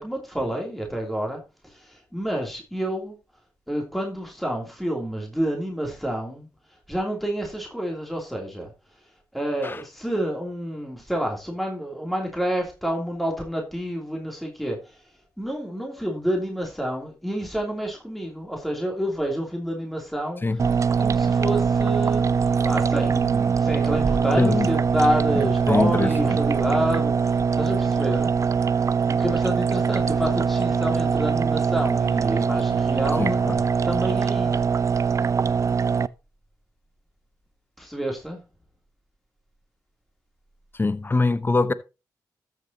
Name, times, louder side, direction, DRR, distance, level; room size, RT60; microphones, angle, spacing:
voice 1, 0.0-1.4 1.7-3.2 3.7-6.5 6.9-8.7 9.3-14.8 15.4-20.4 21.0-22.3 22.6-27.1 27.5-28.3 29.1-33.4 33.8-34.6 37.8-38.4, equal, ahead, 2.9 m, -28 dB
sound 1, 20.6-36.1, right 6 dB, 40° right, 0.4 m, -22 dB
voice 2, 24.4-24.7 25.3-26.4 33.2-33.6 40.8-41.7, left 3 dB, 25° left, 0.8 m, -23 dB
13.5 x 6.7 x 2.8 m
supercardioid pair, 50°, 8 cm